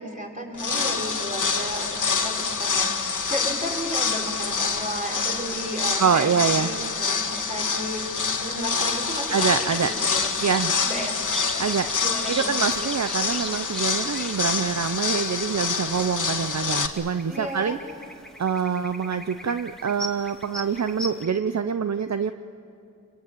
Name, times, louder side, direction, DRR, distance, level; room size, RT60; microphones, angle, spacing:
voice 1, 0.0-6.3 6.6-9.5 9.8-11.2 12.0-12.5 17.3-17.8, equal, 25° right, -2 dB, 5.6 m, -34 dB
sound 1, 0.5-16.9, left 5 dB, 80° left, 1.7 m, -27 dB
voice 2, 6.0-6.7 9.3-10.1 10.4-10.8 11.6-11.9 12.3-17.8 18.4-22.3, right 6 dB, 60° right, 10 dB, 0.7 m, -25 dB
sound 2, 8.9-21.3, left 1 dB, ahead, 2.3 m, -40 dB
26.5 x 23.0 x 9.2 m, 2.6 s
wide cardioid pair, 55°, 31 cm